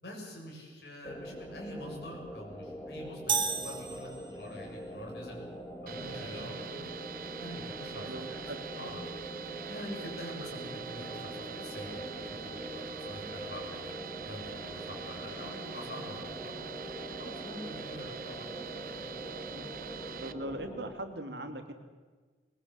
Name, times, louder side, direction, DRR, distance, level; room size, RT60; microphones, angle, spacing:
voice 1, 0.0-5.4 5.8-6.9 7.4-8.1 8.4-9.0 9.7-13.9 14.3-16.5 17.0-18.9, left 1 dB, 60° left, 0 dB, 7.5 m, -45 dB
sound 1, 1.0-20.9, equal, 15° left, 1.9 m, -43 dB
sound 2, 3.3-4.7, right 5 dB, 25° right, 1.7 m, -33 dB
sound 3, 5.9-20.3, right 7 dB, 50° right, 0.9 m, -44 dB
voice 2, 7.9-8.6 18.7-19.1 19.5-19.7 20.2-21.7, right 1 dB, 70° right, 6 dB, 2.7 m, -41 dB
22.0 x 21.5 x 8.3 m, 1.4 s
head